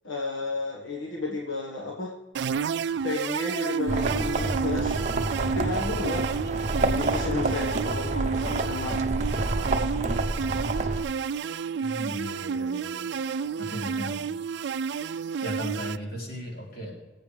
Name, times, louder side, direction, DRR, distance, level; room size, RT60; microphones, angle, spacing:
voice 1, 0.0-2.1 3.0-5.0 5.5-6.3 6.9-9.0 10.1-10.2, left 3 dB, 80° left, -2 dB, 1.5 m, -32 dB
sound 1, 2.3-16.0, right 6 dB, 60° right, 0.3 m, -31 dB
sound 2, 3.9-11.0, right 2 dB, 40° right, 0.8 m, -28 dB
voice 2, 11.8-13.1 13.6-14.4 15.4-16.9, equal, 50° left, -2 dB, 3.5 m, -36 dB
23.0 x 8.2 x 3.4 m, 1.3 s
head